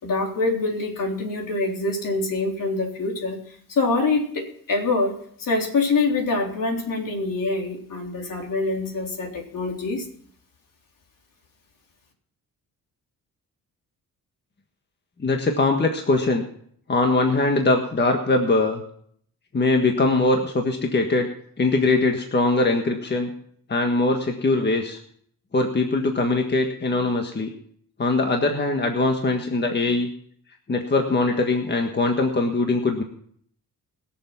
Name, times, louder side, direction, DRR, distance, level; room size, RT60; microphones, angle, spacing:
voice 1, 0.0-3.4 3.7-10.1, left 3 dB, 60° left, 1 dB, 3.7 m, -25 dB
voice 2, 15.2-16.4 16.9-18.8 19.5-21.3 21.6-23.3 23.7-25.0 25.5-27.5 28.0-30.1 30.7-33.0, left 2 dB, 30° left, 3 dB, 1.6 m, -21 dB
21.5 x 7.3 x 6.0 m, 0.63 s
cardioid pair, 115°, 36 cm